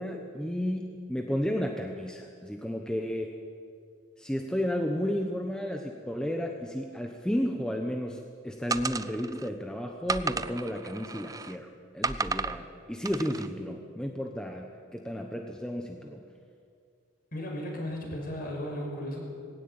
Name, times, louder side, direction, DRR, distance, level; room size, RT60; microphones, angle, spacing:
voice 1, 0.0-3.4 4.2-14.7 14.9-16.2, equal, 5° left, 2 dB, 1.1 m, -33 dB
sound 1, 8.7-9.5 10.1-11.6 12.0-12.6 13.1-13.5, right 4 dB, 15° right, 0.5 m, -33 dB
voice 2, 17.3-19.2, left 1 dB, 45° left, 0 dB, 5.6 m, -35 dB
20.0 x 17.5 x 8.9 m, 2.3 s
head